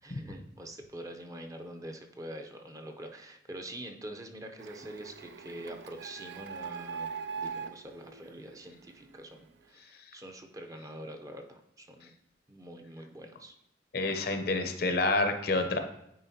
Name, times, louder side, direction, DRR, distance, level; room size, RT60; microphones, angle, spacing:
voice 1, 0.0-7.1 7.4-12.1 12.5-13.5, right 1 dB, 20° right, 4 dB, 0.6 m, -45 dB
Printer, 4.6-9.2, right 6 dB, 70° right, 0.3 m, -41 dB
voice 2, 13.9-15.8, left 2 dB, 55° left, 7 dB, 0.7 m, -28 dB
9.2 x 4.5 x 2.8 m, 0.79 s
head